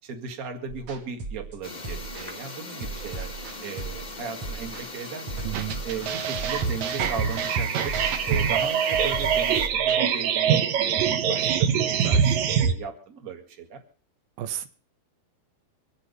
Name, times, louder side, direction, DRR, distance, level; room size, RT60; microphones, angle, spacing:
voice 1, 0.0-3.3 3.6-5.5 5.8-8.0 8.3-13.8, right 6 dB, 30° right, 4 dB, 1.8 m, -37 dB
sound 1, 0.7-10.0, right 3 dB, 45° right, 2.5 m, -37 dB
sound 2, 1.6-9.7, left 2 dB, 75° left, 0.4 m, -39 dB
voice 2, 5.4-5.8 14.4-14.7, right 12 dB, 90° right, 10 dB, 3.0 m, -32 dB
sound 3, 5.5-12.7, right 7 dB, 70° right, 1.9 m, -24 dB
25.0 x 8.4 x 5.4 m, 0.41 s
omnidirectional pair, 4.2 m